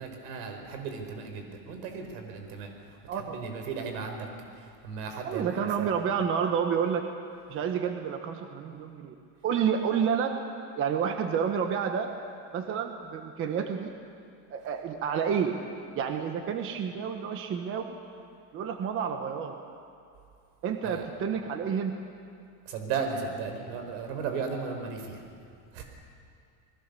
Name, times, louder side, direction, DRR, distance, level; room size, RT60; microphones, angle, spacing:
voice 1, 0.0-2.7 3.1-4.3 4.6-5.9 20.8-21.0 22.6-25.2 25.7-25.8, right 5 dB, 80° right, 4 dB, 4.8 m, -35 dB
voice 2, 5.2-7.1 7.5-9.1 9.4-10.4 10.7-12.1 12.5-13.9 14.5-15.6 15.9-17.8 18.5-19.5 20.6-21.9, right 7 dB, 25° right, 5 dB, 1.2 m, -29 dB
28.5 x 21.0 x 6.9 m, 2.4 s
cardioid pair, 175°, 46 cm